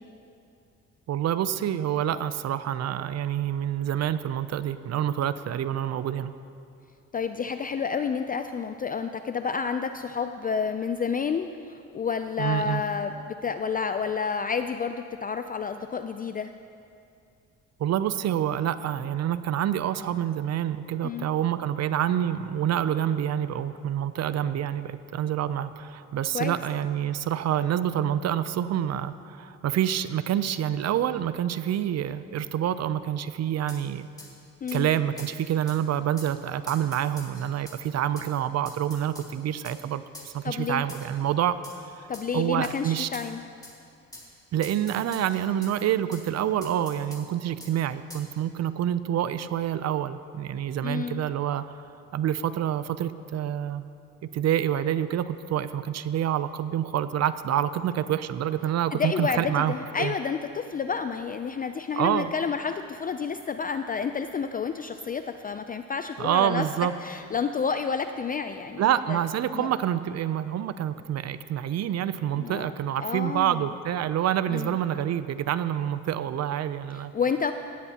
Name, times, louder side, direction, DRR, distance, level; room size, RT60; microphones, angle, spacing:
voice 1, 1.1-6.3 12.4-12.8 17.8-34.1 34.7-41.6 41.8-42.1 42.3-43.1 44.5-51.7 52.1-53.8 54.3-60.2 61.9-62.3 66.2-66.9 68.8-77.1, right 10 dB, 60° right, 13 dB, 0.5 m, -27 dB
voice 2, 7.1-16.5 21.0-21.3 26.3-26.6 34.6-34.9 40.4-40.8 42.1-43.4 50.8-51.2 58.9-66.6 67.0-69.2 69.5-69.7 72.3-72.7 73.0-73.6 74.5-74.8 76.9-77.5, left 6 dB, 30° left, 8 dB, 0.4 m, -30 dB
sound 1, 33.7-33.8 34.2-34.3 34.7-34.8 35.2-35.3 35.7-35.8 36.2-36.3 36.7-37.8 38.2-38.3 38.7-39.3 39.6-39.8 40.1-40.3 40.9-41.2 41.6-41.8 42.1-42.3 42.6-42.8 43.1-43.3 43.6-43.7 44.1-44.3 44.6-45.7 46.1-46.2 46.6-47.2 47.6-47.7 48.1-48.3, left 1 dB, 10° left, 2.5 m, -45 dB
17.0 x 13.5 x 2.9 m, 2.5 s
cardioid pair, 90°, 30 cm